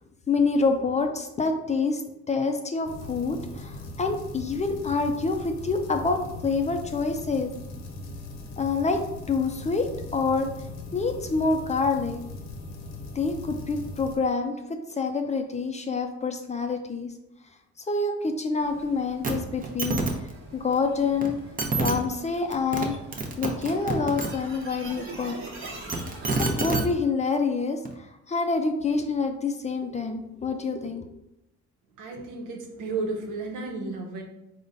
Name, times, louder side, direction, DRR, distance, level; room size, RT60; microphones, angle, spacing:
voice 1, 0.3-2.0 2.3-7.5 8.6-10.5 10.9-12.2 13.1-17.1 17.9-20.0 20.5-21.4 21.8-22.9 23.4-25.4 26.4-31.1, left 4 dB, 25° left, 5 dB, 0.4 m, -27 dB
sound 1, 2.8-14.2, left 2 dB, 65° left, 0.7 m, -39 dB
sound 2, 18.6-26.6, right 2 dB, 45° right, 1.1 m, -44 dB
sound 3, 19.2-19.3 19.6-20.1 21.2-21.3 21.6-21.9 22.5-22.9 23.1-24.3 25.7-26.8 27.9-28.0, right 3 dB, 30° right, 0.7 m, -26 dB
voice 2, 32.0-34.2, right 3 dB, 80° right, 2 dB, 0.8 m, -33 dB
3.8 x 2.1 x 3.8 m, 0.87 s
cardioid pair, 90°, 30 cm